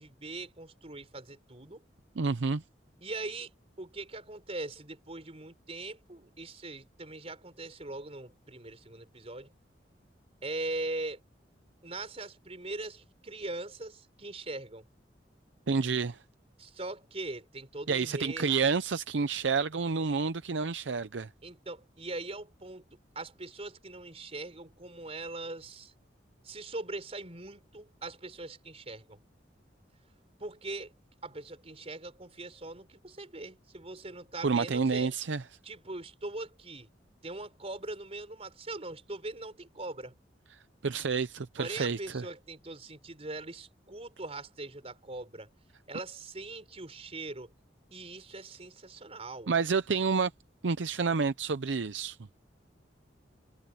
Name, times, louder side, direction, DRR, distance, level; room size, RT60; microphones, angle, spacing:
voice 1, 0.0-1.8 3.0-3.5 3.8-9.5 10.4-11.2 11.8-14.9 16.6-18.5 21.4-22.8 23.1-25.9 26.4-29.2 30.4-30.9 31.2-35.1 35.6-36.9 37.2-40.1 41.6-45.5 45.9-47.5 47.9-49.5, right 2 dB, 35° right, 4.3 m, -41 dB
voice 2, 2.2-2.6 15.7-16.2 17.9-21.3 34.4-35.4 40.8-42.2 49.5-50.3 50.6-52.2, right 5 dB, 80° right, 0.6 m, -29 dB
head